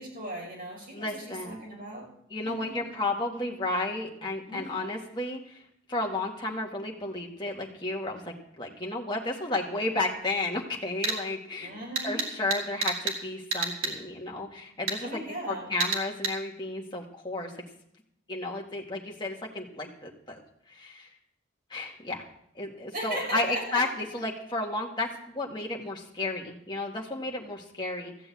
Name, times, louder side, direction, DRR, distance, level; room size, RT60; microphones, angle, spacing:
voice 1, 0.0-2.1 2.4-2.9 4.5-5.0 11.6-12.2 15.0-15.7 22.9-23.9, equal, 45° right, -2 dB, 6.1 m, -37 dB
voice 2, 0.9-1.6 2.3-5.6 5.9-11.7 12.0-15.2 15.5-17.5 18.3-20.4 20.7-21.1 21.7-22.3 22.6-28.1, left 2 dB, 20° left, -1 dB, 1.8 m, -33 dB
sound 1, 11.0-11.2 12.0-13.2 13.5-14.0 14.9-15.0 15.8-16.4, right 4 dB, 80° right, 2.7 m, -29 dB
15.0 x 6.9 x 8.4 m, 0.75 s
head